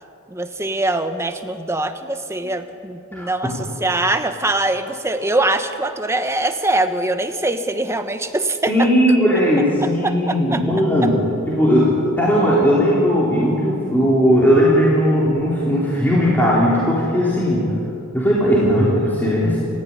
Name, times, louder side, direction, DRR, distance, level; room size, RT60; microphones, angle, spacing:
voice 1, 0.3-8.9 9.8-10.6, right 2 dB, 10° right, 8 dB, 1.2 m, -23 dB
voice 2, 3.1-3.5 8.7-11.2 11.5-17.7 18.1-19.6, equal, 10° left, -7 dB, 3.8 m, -17 dB
28.5 x 15.0 x 9.8 m, 2.8 s
head